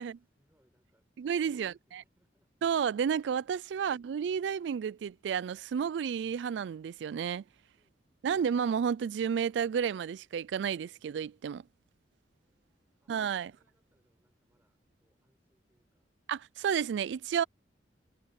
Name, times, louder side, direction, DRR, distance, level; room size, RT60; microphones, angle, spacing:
voice 1, 0.0-1.1 1.4-2.5 7.7-8.5 12.3-13.2 13.5-16.1, equal, 10° right, 7.0 m, -75 dB
voice 2, 1.2-2.0 2.6-7.4 8.2-11.6 13.1-13.5 16.3-17.4, right 7 dB, 80° right, 0.3 m, -31 dB
head